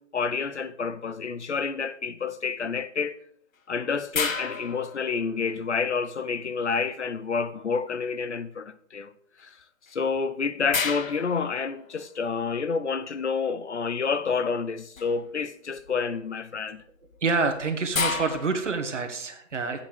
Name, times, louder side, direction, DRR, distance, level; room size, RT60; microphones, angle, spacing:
voice 1, 0.0-3.2 3.7-9.1 9.4-9.5 9.9-16.8, left 5 dB, 60° left, 0.8 m, -29 dB
sound 1, 4.1-5.7 9.9-10.0 10.7-12.3 15.0-15.3 15.8-16.2 17.1-19.0, left 5 dB, 90° left, 1.3 m, -32 dB
voice 2, 17.2-19.8, right 4 dB, 65° right, 1.8 m, -27 dB
8.4 x 8.2 x 5.2 m
hypercardioid pair, 175°, 39 cm